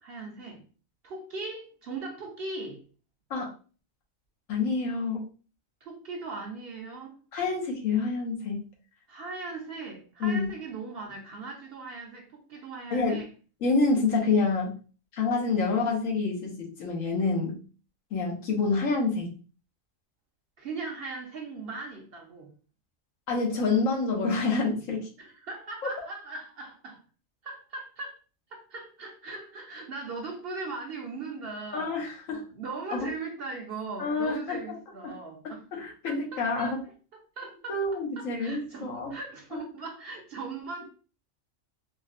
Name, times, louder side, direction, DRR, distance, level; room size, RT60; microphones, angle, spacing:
voice 1, 0.0-0.6 1.0-2.8 5.8-7.2 9.1-13.3 20.6-22.5 25.2-27.0 27.4-28.1 28.5-35.7 36.1-36.8 37.1-37.8 38.2-40.9, right 3 dB, 55° right, 1 dB, 0.8 m, -39 dB
voice 2, 4.5-5.3 7.3-8.6 10.2-10.5 12.9-13.2 13.6-14.7 15.1-17.6 18.1-19.3 23.3-25.0 31.7-32.5 32.9-33.1 34.0-34.6 35.0-35.1 35.7-36.8 37.7-39.1, left 4 dB, 80° left, 0 dB, 1.3 m, -27 dB
4.0 x 2.1 x 2.4 m, 0.36 s
omnidirectional pair, 1.4 m